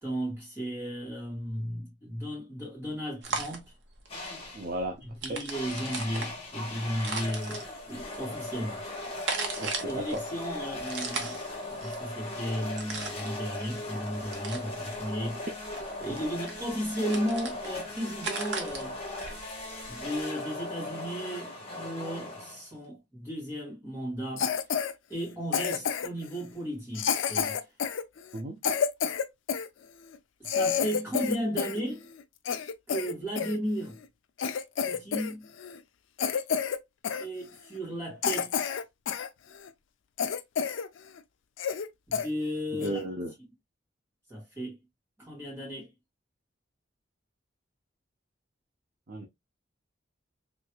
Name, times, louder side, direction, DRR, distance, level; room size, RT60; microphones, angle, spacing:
voice 1, 0.0-3.7 5.2-8.8 9.8-11.4 11.7-15.5 16.0-19.0 19.9-24.5 25.1-27.6 30.4-32.1 32.9-34.0 34.8-35.5 37.2-38.7 42.1-43.0 44.3-44.8 45.2-45.9, equal, 10° right, 2.0 m, -35 dB
sound 1, 3.2-20.2, right 4 dB, 65° right, 0.9 m, -39 dB
sound 2, 4.1-4.8 5.5-22.9, left 2 dB, 30° left, 1.2 m, -38 dB
voice 2, 4.5-5.0 5.3-5.4 9.6-10.2 28.3-28.6 42.7-43.3 49.1-49.3, right 1 dB, 45° right, 0.5 m, -34 dB
Cough, 24.4-24.9 25.5-26.2 27.0-29.7 30.1-30.2 30.4-31.8 32.1-33.6 34.0-34.1 34.4-35.3 35.6-35.8 36.2-36.8 37.0-37.3 37.8-37.9 38.2-39.3 39.7-39.8 40.2-40.9 41.2-41.3 41.6-41.9 42.1-42.3 42.8-43.0, left 7 dB, 90° left, 0.4 m, -29 dB
3.2 x 3.1 x 2.2 m
head